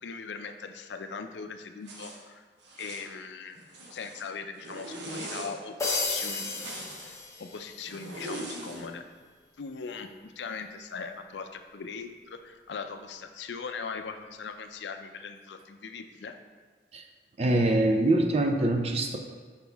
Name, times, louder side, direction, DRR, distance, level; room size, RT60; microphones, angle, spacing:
voice 1, 0.0-2.4 2.8-3.6 3.9-6.7 7.4-9.0 9.6-16.3, left 5 dB, 80° left, 7 dB, 0.5 m, -40 dB
Zipper (clothing), 1.8-2.2 2.6-3.1 3.6-4.3 4.6-5.5 6.2-7.1 7.9-8.9, right 1 dB, 85° right, 1.1 m, -41 dB
sound 1, 5.8-7.9, left 3 dB, 15° left, 0.9 m, -33 dB
voice 2, 17.4-19.2, right 1 dB, 35° right, 3 dB, 0.6 m, -24 dB
6.2 x 5.8 x 3.4 m, 1.5 s
head